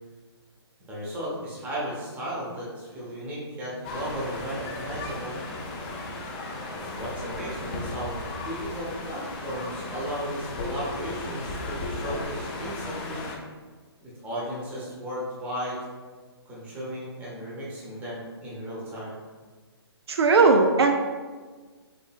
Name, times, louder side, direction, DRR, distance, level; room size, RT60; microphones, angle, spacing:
voice 1, 0.9-5.4 6.9-8.1 8.4-13.3 14.0-15.8 16.5-19.2, equal, 10° right, -7 dB, 0.8 m, -35 dB
sound 1, 3.8-13.4, left 2 dB, 20° left, 0.3 m, -35 dB
voice 2, 20.1-20.9, right 4 dB, 70° right, 4 dB, 0.4 m, -18 dB
3.8 x 3.3 x 2.3 m, 1.4 s
hypercardioid pair, 155°, 14 cm